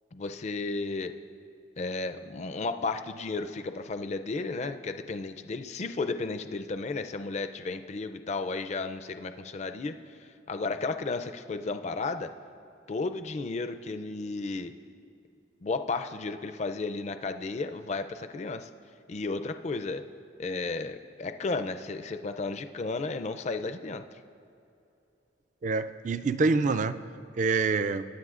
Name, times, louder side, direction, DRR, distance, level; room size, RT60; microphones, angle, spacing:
voice 1, 0.1-1.1 1.8-9.9 10.5-12.3 12.9-14.7 15.6-18.7 19.1-20.0 20.4-24.0, left 3 dB, 35° left, 8 dB, 0.4 m, -33 dB
voice 2, 25.6-27.0 27.4-28.1, right 4 dB, 40° right, 12 dB, 0.3 m, -26 dB
22.0 x 10.0 x 2.4 m, 2.7 s
head